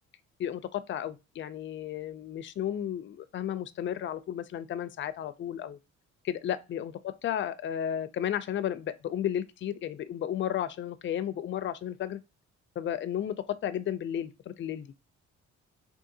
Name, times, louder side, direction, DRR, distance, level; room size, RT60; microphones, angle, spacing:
voice 1, 0.4-5.8 6.2-12.2 12.8-14.9, left 10 dB, 40° left, 0.4 m, -33 dB
3.7 x 2.5 x 2.7 m
cardioid pair, 90°, 30 cm